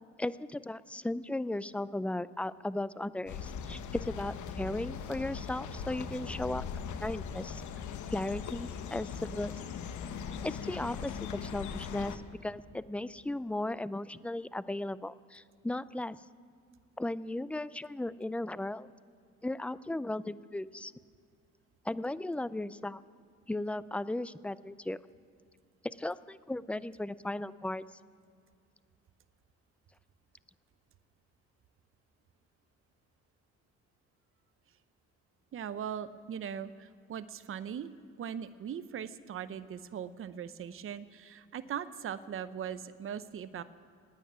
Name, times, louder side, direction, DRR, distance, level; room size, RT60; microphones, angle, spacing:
voice 1, 0.2-6.6 7.0-7.6 8.1-9.5 10.4-16.2 17.0-18.9 19.4-20.9 21.9-23.0 23.5-25.0 25.8-27.8, left 1 dB, 5° left, 17 dB, 0.3 m, -36 dB
sound 1, 3.3-12.2, left 6 dB, 75° left, 1.0 m, -40 dB
voice 2, 35.5-37.9 38.2-43.6, right 8 dB, 45° right, 13 dB, 0.7 m, -40 dB
16.5 x 9.4 x 9.3 m, 2.3 s
cardioid pair, 90°, 30 cm